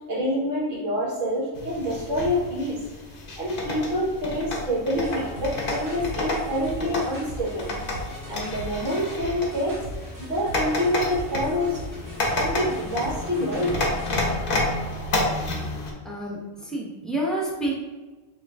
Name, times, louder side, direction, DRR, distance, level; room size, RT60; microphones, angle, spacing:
voice 1, 0.1-2.8 3.4-7.6 8.3-9.8 10.2-11.8 12.3-13.8 14.0-14.2, equal, 70° right, -6 dB, 1.6 m, -27 dB
sound 1, 1.5-15.9, left 2 dB, 50° left, 0.8 m, -30 dB
sound 2, 4.9-14.5, equal, 15° right, 1.3 m, -39 dB
voice 2, 16.0-17.8, right 1 dB, ahead, -3 dB, 0.5 m, -29 dB
5.3 x 2.3 x 3.4 m, 1.2 s
omnidirectional pair, 1.4 m